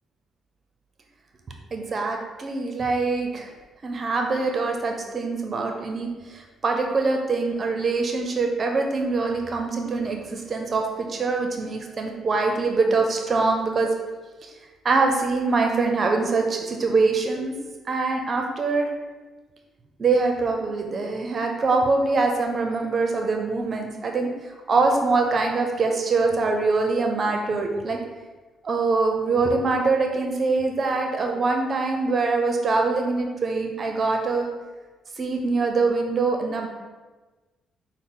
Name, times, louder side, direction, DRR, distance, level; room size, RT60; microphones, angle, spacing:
voice 1, 1.7-3.5 3.8-13.9 14.4-14.5 14.8-17.5 17.9-18.9 20.0-24.3 24.7-28.0 28.6-34.5 35.2-36.7, right 3 dB, 40° right, 3 dB, 0.6 m, -24 dB
6.1 x 2.1 x 3.7 m, 1.2 s
cardioid pair, 90°, 0 cm